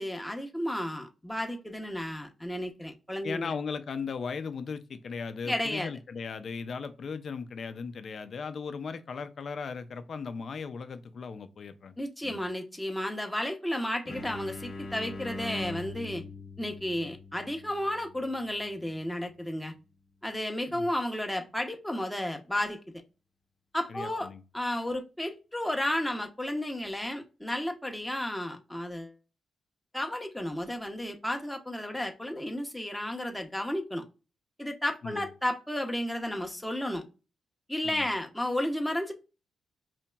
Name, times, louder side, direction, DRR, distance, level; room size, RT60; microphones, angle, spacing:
voice 1, 0.0-3.5 5.5-5.9 12.0-16.2 16.6-19.7 20.2-22.8 23.7-29.1 29.9-34.0 34.6-37.0 37.7-39.1, left 1 dB, 5° left, 0.7 m, -33 dB
voice 2, 3.2-12.0 12.2-12.4 20.7-20.9 23.9-24.4 35.0-35.3 37.8-38.1, left 5 dB, 55° left, 0.5 m, -37 dB
sound 1, 14.1-19.6, left 2 dB, 35° left, 0.8 m, -42 dB
4.2 x 2.9 x 2.2 m
cardioid pair, 110°, 0 cm